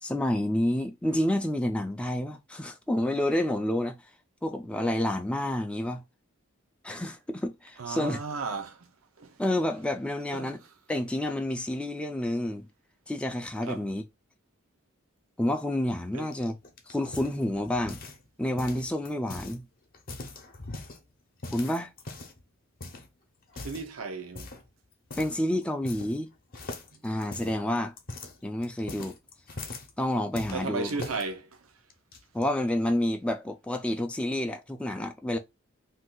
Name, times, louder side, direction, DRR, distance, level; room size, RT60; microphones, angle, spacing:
voice 1, 0.0-4.0 4.4-6.0 6.8-8.2 9.4-10.6 10.9-12.7 13.1-14.0 15.4-16.6 16.9-18.0 18.4-19.6 21.5-21.9 25.2-26.3 27.0-27.9 28.4-29.1 30.0-30.9 32.3-35.4, left 1 dB, 5° left, 0.3 m, -29 dB
voice 2, 7.8-8.9 9.2-9.4 10.3-10.5 13.7-13.9 16.1-16.3 23.6-24.5 30.5-31.7, right 4 dB, 90° right, 0.6 m, -35 dB
sound 1, 16.3-18.3 18.6-19.6 19.9-21.0 21.4-22.4 22.8-23.1 23.5-23.9 24.4-24.7 25.1-25.4 25.6-26.3 26.5-29.9 30.4-31.2 31.9-32.4, left 2 dB, 45° left, 0.7 m, -41 dB
2.6 x 2.3 x 3.7 m
head